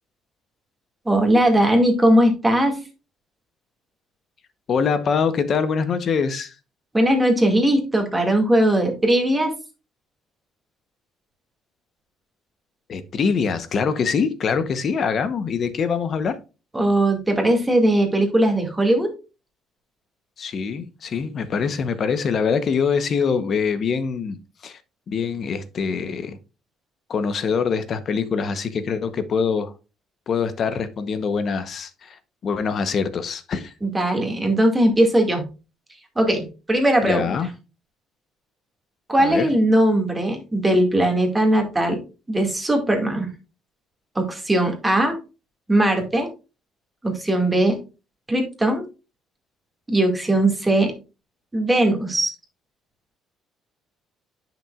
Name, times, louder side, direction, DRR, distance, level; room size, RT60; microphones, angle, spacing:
voice 1, 1.1-2.8 6.9-9.6 16.7-19.1 33.8-35.4 36.2-37.3 39.1-42.0 42.3-43.3 44.2-45.2 45.7-46.3 47.0-47.8 48.3-48.8 49.9-50.9 51.5-52.3, right 1 dB, 10° right, 2.1 m, -19 dB
voice 2, 4.7-6.5 12.9-16.4 20.4-24.8 25.1-26.4 27.1-29.7 30.3-33.7 37.0-37.5 39.2-39.5, left 6 dB, 45° left, 0.9 m, -24 dB
10.0 x 6.0 x 2.4 m
cardioid pair, 125°, 0 cm